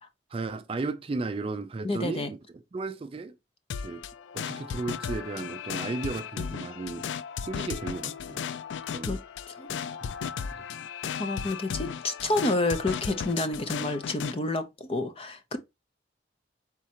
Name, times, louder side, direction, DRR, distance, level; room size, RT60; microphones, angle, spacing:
voice 1, 0.3-2.4 2.7-3.3 3.8-4.0 4.3-7.1 7.5-8.4 8.9-9.2 10.2-10.6, right 3 dB, 30° right, 0.3 m, -34 dB
voice 2, 1.8-2.3 9.1-9.2 9.6-9.7 11.2-15.6, left 2 dB, 30° left, 0.6 m, -29 dB
sound 1, 3.7-14.4, left 7 dB, 80° left, 0.3 m, -35 dB
4.3 x 3.6 x 2.8 m
head